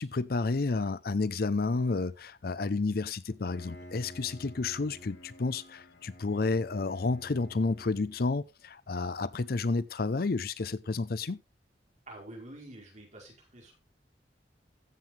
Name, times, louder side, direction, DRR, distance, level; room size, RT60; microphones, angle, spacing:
voice 1, 0.0-11.4, left 3 dB, 55° left, 0.6 m, -31 dB
Bowed string instrument, 3.3-8.4, equal, 85° left, 4.8 m, -50 dB
voice 2, 12.1-13.7, right 1 dB, 45° right, 5.2 m, -47 dB
15.0 x 7.7 x 3.3 m
head